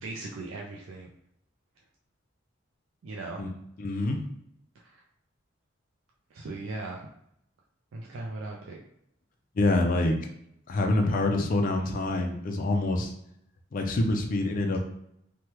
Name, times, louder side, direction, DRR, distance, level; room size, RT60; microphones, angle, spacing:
voice 1, 0.0-1.1 3.0-3.5 4.8-5.0 6.3-7.1 7.9-8.8, right 2 dB, 85° right, -1 dB, 0.4 m, -38 dB
voice 2, 3.8-4.3 9.6-10.2 10.7-13.1 13.7-14.8, left 2 dB, 45° left, 3 dB, 0.4 m, -26 dB
3.2 x 2.2 x 2.9 m, 0.74 s
head